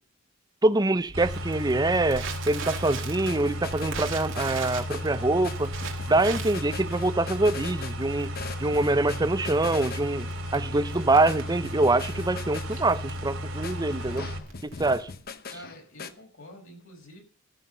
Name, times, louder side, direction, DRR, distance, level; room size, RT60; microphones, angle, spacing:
voice 1, 0.6-5.7 6.1-8.3 8.6-14.3 14.6-15.1, right 2 dB, 20° right, 0.6 m, -25 dB
Crackle, 1.1-15.3, right 6 dB, 60° right, 2.3 m, -41 dB
sound 1, 1.1-14.4, equal, 85° right, 2.8 m, -34 dB
sound 2, 2.9-16.1, left 5 dB, 45° left, 0.9 m, -42 dB
voice 2, 15.5-17.2, equal, 70° left, 4.9 m, -47 dB
14.0 x 5.8 x 6.6 m
head